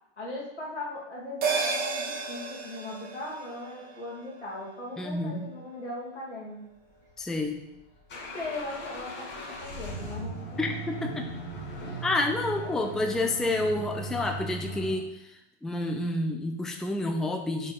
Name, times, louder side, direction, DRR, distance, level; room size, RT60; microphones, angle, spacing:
voice 1, 0.2-6.6 8.3-10.8 11.8-12.0 12.6-13.0, left 2 dB, 85° left, -6 dB, 2.9 m, -39 dB
sound 1, 1.4-6.1 6.4-6.5, right 4 dB, 25° right, 1.3 m, -34 dB
voice 2, 5.0-5.5 7.2-7.6 10.6-11.3 12.0-17.7, left 2 dB, ahead, 4 dB, 0.5 m, -29 dB
sound 2, 7.1-14.9, right 2 dB, 35° left, 2.3 m, -38 dB
5.8 x 5.1 x 5.3 m, 0.81 s
figure-of-eight pair, 90°, 34 cm